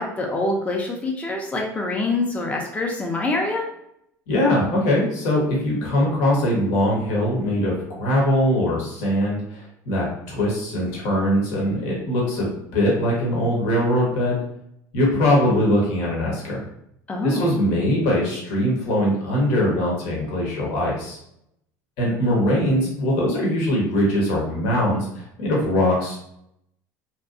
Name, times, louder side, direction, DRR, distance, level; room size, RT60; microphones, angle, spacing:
voice 1, 0.0-3.6 17.1-17.5, left 2 dB, 15° left, 0 dB, 0.5 m, -25 dB
voice 2, 4.3-14.4 14.9-16.6 17.2-21.2 22.0-26.2, left 1 dB, 70° left, -3 dB, 0.9 m, -21 dB
2.7 x 2.2 x 2.5 m, 0.77 s
hypercardioid pair, 85°, 9 cm